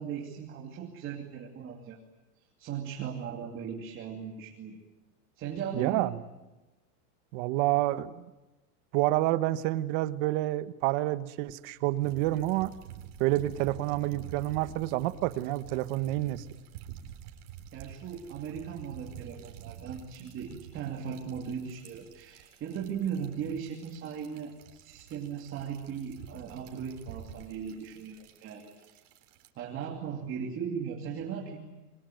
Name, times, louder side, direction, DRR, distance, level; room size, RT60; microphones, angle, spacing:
voice 1, 0.0-2.0 2.6-4.8 5.4-6.1 17.7-29.0 29.6-31.6, right 7 dB, 25° right, 0 dB, 2.8 m, -38 dB
voice 2, 5.7-6.1 7.3-8.3 8.9-12.7 13.2-16.4, right 16 dB, 45° right, 13 dB, 1.3 m, -28 dB
sound 1, 12.0-29.5, right 10 dB, 70° right, 4.0 m, -48 dB
26.5 x 23.5 x 9.2 m, 1.1 s
supercardioid pair, 165°, 46 cm